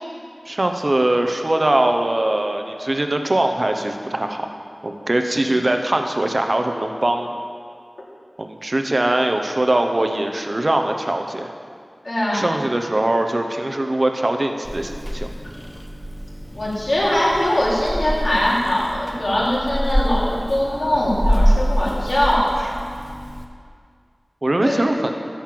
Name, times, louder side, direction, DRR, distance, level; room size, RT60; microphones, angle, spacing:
voice 1, 0.4-4.5 4.8-7.3 8.4-11.5 12.3-15.3 24.4-25.1, right 1 dB, 50° right, 5 dB, 0.9 m, -21 dB
voice 2, 12.0-12.4 16.5-22.4 24.6-24.8, left 1 dB, 60° left, -7 dB, 3.7 m, -21 dB
Purr / Meow, 14.6-23.4, equal, 5° left, 1.2 m, -25 dB
13.5 x 5.7 x 7.7 m, 2.2 s
wide cardioid pair, 45°, 0 cm